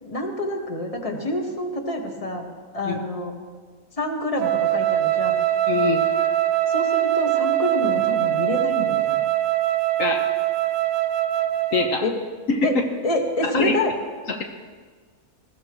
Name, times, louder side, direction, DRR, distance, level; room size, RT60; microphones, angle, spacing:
voice 1, 0.0-2.5 2.7-3.3 4.0-5.4 6.7-9.2 12.0-12.1 12.6-12.8 13.0-13.9, left 1 dB, 25° left, 2 dB, 1.6 m, -27 dB
Wind instrument woodwind instrument, 4.4-12.0, right 13 dB, 85° right, 1.1 m, -22 dB
voice 2, 5.7-6.0 10.0-10.3 11.7-12.1 12.5-12.7 13.4-13.8 14.3-14.4, left 4 dB, 70° left, 3 dB, 1.3 m, -24 dB
21.0 x 15.5 x 3.0 m, 1.5 s
omnidirectional pair, 1.5 m